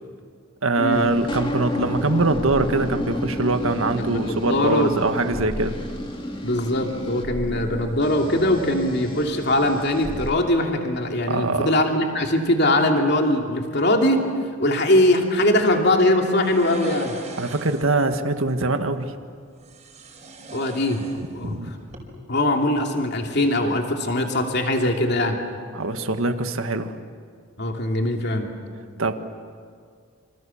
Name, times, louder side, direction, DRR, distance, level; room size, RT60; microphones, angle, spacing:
voice 1, 0.6-5.8 11.3-11.8 17.4-19.1 21.4-21.7 25.7-26.9 29.0-29.1, right 2 dB, 90° right, 7 dB, 1.7 m, -23 dB
sound 1, 0.9-10.3, equal, 25° left, 2.4 m, -31 dB
voice 2, 4.0-4.9 6.4-14.2 14.6-17.1 20.5-21.6 22.3-25.4 27.6-28.5, left 1 dB, 55° left, 2 dB, 2.8 m, -21 dB
sound 2, 16.3-18.0 19.6-21.5 21.8-22.0, right 2 dB, 35° right, 4.9 m, -39 dB
27.5 x 27.0 x 7.2 m, 2.1 s
head